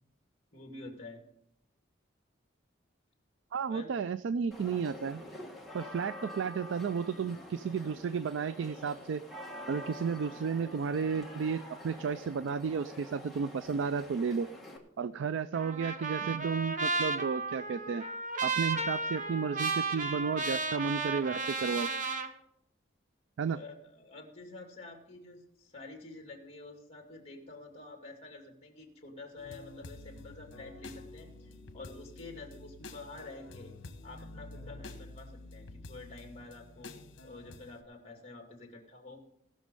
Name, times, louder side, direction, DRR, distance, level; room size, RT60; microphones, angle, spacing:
voice 1, 0.5-1.2 3.7-3.9 23.5-33.7 34.0-39.2, left 2 dB, 30° left, 2 dB, 2.4 m, -48 dB
voice 2, 3.5-5.2 5.7-9.2 9.7-14.5 15.0-18.0 18.4-21.9 23.4-23.6, right 6 dB, 75° right, 15 dB, 0.4 m, -33 dB
sound 1, 4.5-14.8, left 1 dB, ahead, 1.5 m, -47 dB
Trumpet, 15.5-22.3, right 3 dB, 40° right, 1.0 m, -34 dB
sound 2, 29.4-37.8, left 2 dB, 70° left, 1.2 m, -49 dB
18.0 x 6.4 x 5.3 m, 0.74 s
head